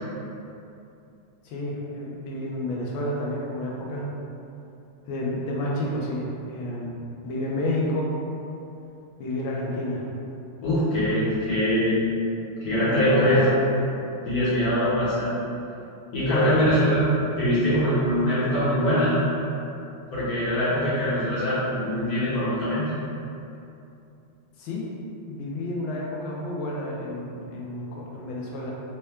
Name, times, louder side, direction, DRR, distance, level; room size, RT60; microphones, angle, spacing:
voice 1, 1.4-4.1 5.0-8.1 9.2-10.1 10.9-11.0 12.8-13.6 16.3-16.6 24.6-24.9 25.3-28.7, left 1 dB, 75° left, -3 dB, 1.4 m, -30 dB
voice 2, 10.6-12.0 12.6-13.4 14.2-15.3 16.1-17.1 17.3-19.2 20.1-22.9, equal, 55° left, -11 dB, 1.2 m, -23 dB
4.2 x 2.2 x 3.4 m, 2.7 s
omnidirectional pair, 2.4 m